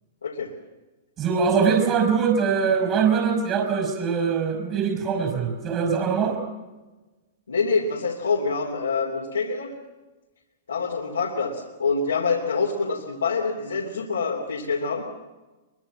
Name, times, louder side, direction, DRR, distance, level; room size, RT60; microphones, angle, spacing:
voice 1, 1.2-6.4, right 6 dB, 35° right, 5 dB, 5.3 m, -22 dB
voice 2, 7.5-9.7 10.7-15.0, left 4 dB, 90° left, -1 dB, 3.1 m, -26 dB
23.5 x 23.0 x 7.4 m, 1.2 s
hypercardioid pair, 115°, 0 cm